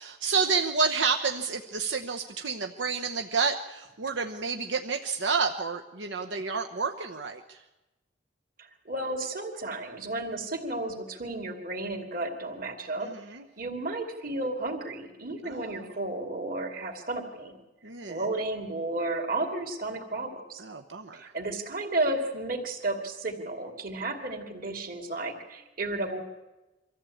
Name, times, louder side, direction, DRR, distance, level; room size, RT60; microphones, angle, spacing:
voice 1, 0.0-7.6 13.0-13.4 15.4-15.8 17.8-18.2 20.6-21.3, right 5 dB, 85° right, 4 dB, 1.0 m, -30 dB
voice 2, 8.6-17.6 18.1-20.6 21.1-26.2, right 2 dB, 50° right, 4 dB, 2.8 m, -33 dB
24.0 x 14.5 x 8.6 m, 1.0 s
head